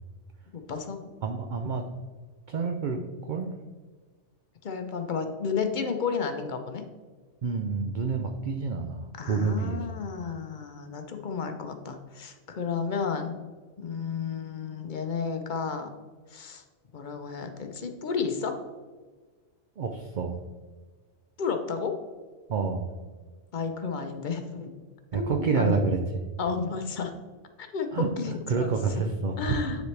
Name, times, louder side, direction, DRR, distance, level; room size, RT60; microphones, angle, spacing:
voice 1, 0.5-1.0 4.6-6.8 9.2-13.4 13.8-15.9 16.3-16.6 16.9-18.6 21.4-22.0 23.5-24.7 25.1-25.8 26.4-27.1 27.6-28.7 29.4-29.9, left 5 dB, 50° left, 6 dB, 0.7 m, -32 dB
voice 2, 1.2-1.8 2.5-3.0 3.3-3.5 7.4-9.8 19.8-20.4 22.5-22.9 25.1-26.2 27.9-28.1 28.5-29.6, right 4 dB, 55° right, 3 dB, 0.6 m, -28 dB
9.5 x 4.2 x 3.2 m, 1.4 s
omnidirectional pair, 1.2 m